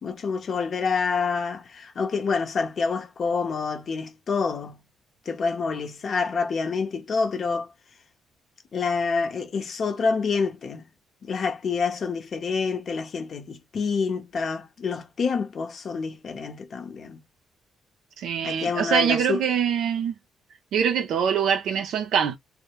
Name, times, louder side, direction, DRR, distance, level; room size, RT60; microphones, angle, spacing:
voice 1, 0.0-4.8 5.3-7.7 8.7-10.8 11.2-17.2 18.4-19.4, left 5 dB, 50° left, 0.7 m, -27 dB
voice 2, 18.2-20.1 20.7-22.4, right 7 dB, 75° right, 0.5 m, -24 dB
2.1 x 2.1 x 2.9 m
cardioid pair, 90°, 0 cm